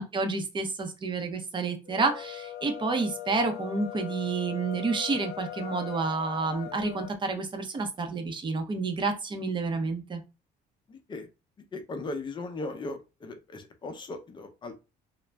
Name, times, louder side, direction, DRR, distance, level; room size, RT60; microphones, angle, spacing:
voice 1, 0.0-10.2, right 4 dB, 30° right, 5 dB, 0.7 m, -29 dB
sound 1, 1.8-7.2, left 12 dB, 80° left, 0.4 m, -40 dB
voice 2, 10.9-11.3 11.7-14.7, left 2 dB, 30° left, 6 dB, 0.6 m, -38 dB
2.5 x 2.1 x 3.2 m, 0.29 s
cardioid pair, 110°, 17 cm